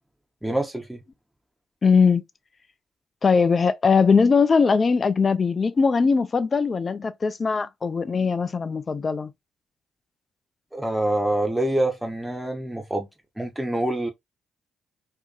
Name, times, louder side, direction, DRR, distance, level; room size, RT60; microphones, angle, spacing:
voice 1, 0.4-1.0 10.7-13.1 13.4-14.1, right 1 dB, 5° right, 0.7 m, -26 dB
voice 2, 1.8-2.2 3.2-9.3, left 5 dB, 35° left, 0.4 m, -20 dB
2.6 x 2.6 x 2.2 m
figure-of-eight pair, 45°, 0 cm